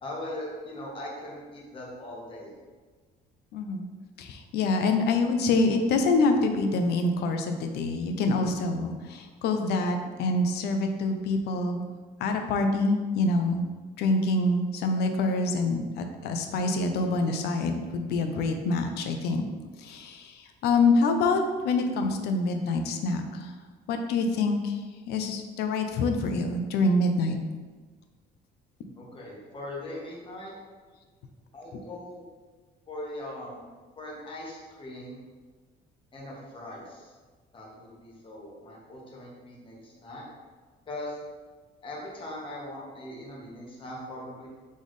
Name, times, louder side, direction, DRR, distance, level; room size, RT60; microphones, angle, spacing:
voice 1, 0.0-2.5 29.0-30.5 31.5-32.2 32.9-33.6 34.0-35.2 36.1-37.1 37.5-40.2 40.9-41.2 41.8-44.5, left 1 dB, 30° left, -4 dB, 1.3 m, -40 dB
voice 2, 3.5-3.9 4.2-11.8 12.2-13.6 14.0-19.5 19.8-23.5 23.9-24.8 25.1-27.4, left 3 dB, 75° left, 6 dB, 0.6 m, -26 dB
4.2 x 3.5 x 3.1 m, 1.4 s
cardioid pair, 110°, 17 cm